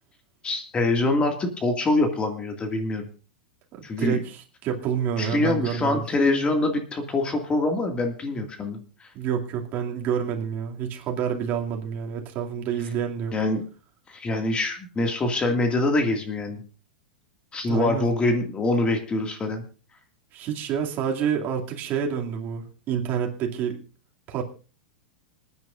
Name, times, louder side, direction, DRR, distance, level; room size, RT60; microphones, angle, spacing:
voice 1, 0.4-3.1 3.8-4.2 5.2-9.1 13.3-13.6 14.1-16.6 17.5-19.6, left 2 dB, 20° left, 5 dB, 2.1 m, -24 dB
voice 2, 3.7-6.0 9.1-13.3 17.6-18.1 20.3-23.8 24.3-24.4, right 8 dB, 40° right, 1 dB, 2.5 m, -28 dB
27.0 x 9.6 x 2.5 m, 0.35 s
hypercardioid pair, 105°, 5 cm